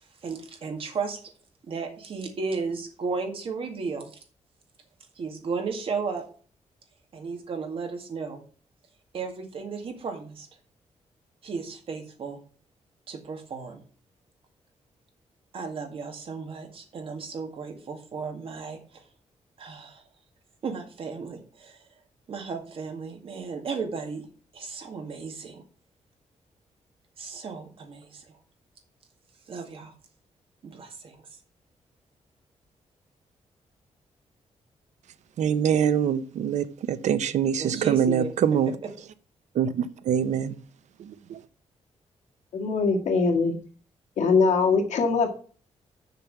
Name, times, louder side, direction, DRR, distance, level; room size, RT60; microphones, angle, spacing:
voice 1, 0.2-1.2 1.6-4.1 5.2-6.2 7.1-8.4 9.1-10.5 11.4-12.4 13.1-13.8 15.5-19.0 19.6-20.0 20.6-21.9 22.3-24.3 24.5-25.6 27.2-28.4 29.5-29.9 30.6-31.2 37.6-38.3 38.6-38.9, right 5 dB, 50° right, 2.0 m, -34 dB
voice 2, 35.4-38.7 39.6-40.5 41.3-41.4, right 8 dB, 80° right, 0.7 m, -24 dB
voice 3, 42.5-43.6 44.2-45.3, left 4 dB, 85° left, 1.8 m, -22 dB
6.8 x 6.0 x 6.9 m
wide cardioid pair, 175°, 12 cm